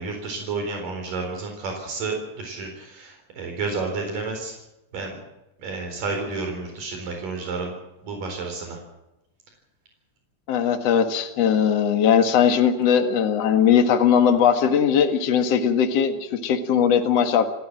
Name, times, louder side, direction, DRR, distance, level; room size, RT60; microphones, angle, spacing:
voice 1, 0.0-4.5 4.9-5.2 5.6-7.7 8.0-8.8, right 3 dB, 85° right, 2 dB, 5.8 m, -31 dB
voice 2, 10.5-17.5, left 8 dB, 55° left, 6 dB, 2.6 m, -19 dB
29.0 x 14.0 x 7.6 m, 0.93 s
omnidirectional pair, 3.8 m